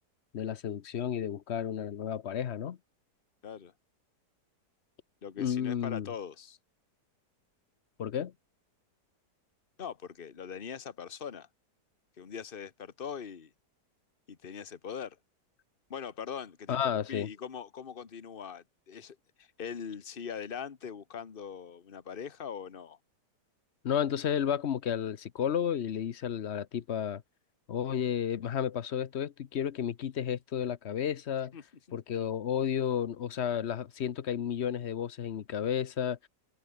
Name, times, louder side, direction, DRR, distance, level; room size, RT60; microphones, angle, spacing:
voice 1, 0.3-2.8 5.4-6.1 8.0-8.3 16.7-17.3 23.8-27.2 27.7-31.5 31.9-36.2, left 9 dB, 50° left, 0.9 m, -32 dB
voice 2, 5.2-6.6 9.8-11.5 12.2-13.5 14.3-15.2 15.9-23.0 31.5-31.6 31.9-32.0, left 7 dB, 35° left, 1.4 m, -41 dB
omnidirectional pair, 1.8 m